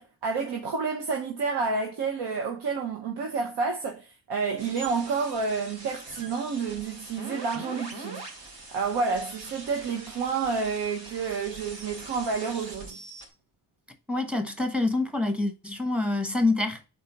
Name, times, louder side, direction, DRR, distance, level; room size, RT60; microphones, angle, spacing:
voice 1, 0.0-8.2 8.7-13.0, right 4 dB, 90° right, 1.1 m, -29 dB
sound 1, 4.6-13.2, right 2 dB, 65° right, 2.9 m, -43 dB
voice 2, 14.1-16.9, left 2 dB, 5° right, 1.0 m, -26 dB
4.4 x 4.1 x 5.2 m
cardioid pair, 110°, 40 cm